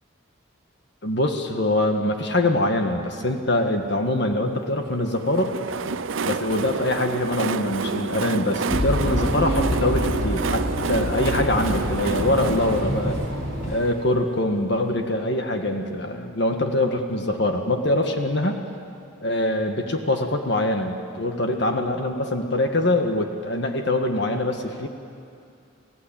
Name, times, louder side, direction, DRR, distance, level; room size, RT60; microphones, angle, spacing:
voice 1, 1.0-5.5 6.2-13.2 13.7-18.6 19.2-24.9, left 1 dB, 60° left, 4 dB, 1.7 m, -24 dB
Train, 5.1-14.7, right 4 dB, 75° right, 0.7 m, -30 dB
sound 1, 8.7-13.8, equal, 40° left, 5.9 m, -26 dB
29.5 x 16.0 x 8.8 m, 2.5 s
head